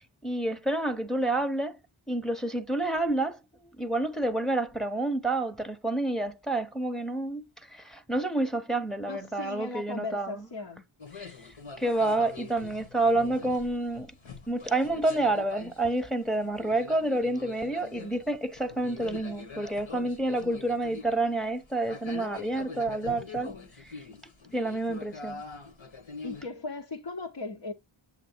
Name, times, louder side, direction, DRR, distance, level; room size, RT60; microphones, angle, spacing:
voice 1, 0.2-1.8 2.1-3.4 3.8-10.4 11.1-11.5 11.8-14.1 14.5-23.5 23.8-24.0 24.5-25.4, right 2 dB, ahead, 0.8 m, -29 dB
voice 2, 9.1-10.8 23.4-23.7 26.2-27.7, left 3 dB, 60° left, 0.9 m, -38 dB
sound 1, 11.0-26.4, left 4 dB, 75° left, 1.3 m, -44 dB
7.5 x 2.9 x 4.4 m
wide cardioid pair, 45°, 47 cm